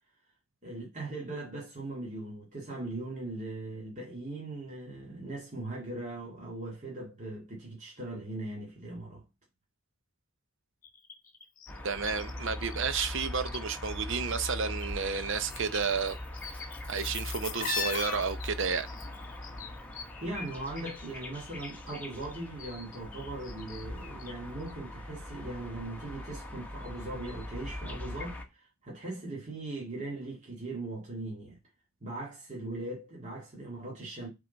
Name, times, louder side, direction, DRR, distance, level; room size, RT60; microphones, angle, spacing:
voice 1, 0.6-9.2 20.2-31.6 32.0-34.3, right 2 dB, 35° right, 1.9 m, -39 dB
sound 1, 10.8-13.6 13.8-14.9 15.1-21.1 21.3-24.4 24.7-24.8, left 5 dB, 40° left, 1.0 m, -41 dB
sound 2, 11.7-28.4, left 1 dB, 5° left, 1.1 m, -41 dB
voice 2, 11.8-16.2 16.5-18.9, right 5 dB, 55° right, 0.7 m, -32 dB
7.7 x 3.8 x 4.0 m
head